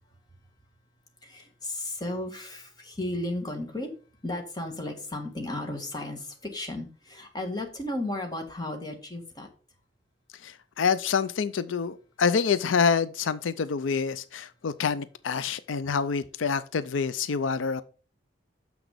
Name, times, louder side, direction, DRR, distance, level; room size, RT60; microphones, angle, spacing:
voice 1, 1.2-3.9 4.2-9.5, left 1 dB, 20° left, 1.6 m, -34 dB
voice 2, 10.4-17.8, left 6 dB, 90° left, 0.5 m, -27 dB
7.1 x 6.0 x 5.0 m
head